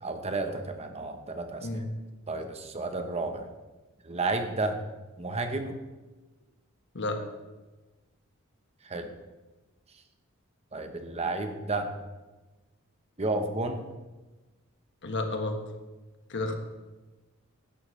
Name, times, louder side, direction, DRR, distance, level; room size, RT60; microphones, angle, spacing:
voice 1, 0.0-1.8 2.3-3.5 4.0-4.8 5.2-5.8 8.8-9.1 10.7-11.9 13.2-13.8, right 2 dB, 30° right, 6 dB, 0.9 m, -32 dB
voice 2, 15.0-15.6 16.3-16.6, left 2 dB, 55° left, 5 dB, 1.4 m, -31 dB
15.0 x 11.5 x 3.2 m, 1.2 s
head